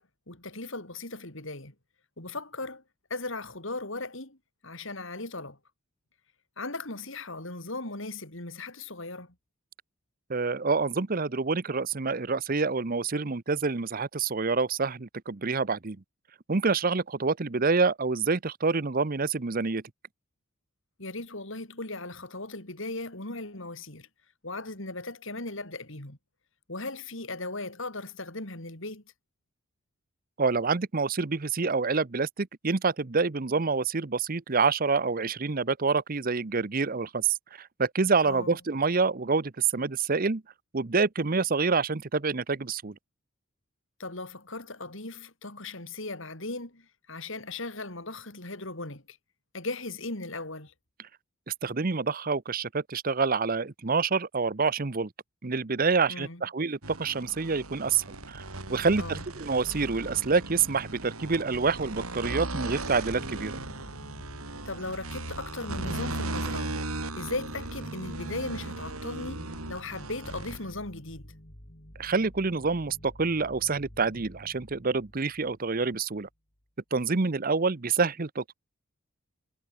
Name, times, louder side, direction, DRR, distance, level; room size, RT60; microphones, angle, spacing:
voice 1, 0.0-1.7 2.2-2.8 3.1-4.4 4.6-5.6 6.6-9.3 21.0-24.1 24.4-26.2 26.7-29.0 38.2-38.6 44.0-49.2 49.5-50.7 56.1-56.4 59.0-59.2 64.7-66.8 67.2-71.3, left 2 dB, 60° left, 4.2 m, -37 dB
voice 2, 10.3-16.0 16.5-19.8 30.4-40.4 40.7-42.9 51.5-55.1 55.4-63.5 72.0-76.3 76.9-78.5, right 4 dB, 40° right, 0.8 m, -27 dB
sound 1, 56.8-70.7, right 2 dB, 85° right, 6.0 m, -37 dB
sound 2, 63.1-76.3, equal, 40° left, 5.5 m, -49 dB
head